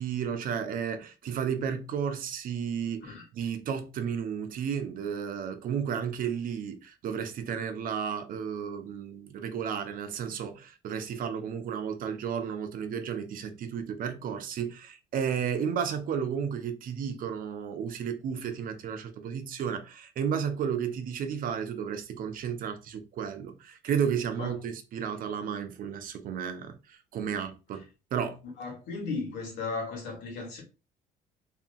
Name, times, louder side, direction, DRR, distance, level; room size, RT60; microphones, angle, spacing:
voice 1, 0.0-27.8 28.1-28.4, right 7 dB, 55° right, 0.5 m, -33 dB
voice 2, 28.6-30.6, left 4 dB, 85° left, 1.3 m, -35 dB
2.8 x 2.5 x 2.3 m
cardioid pair, 110°, 17 cm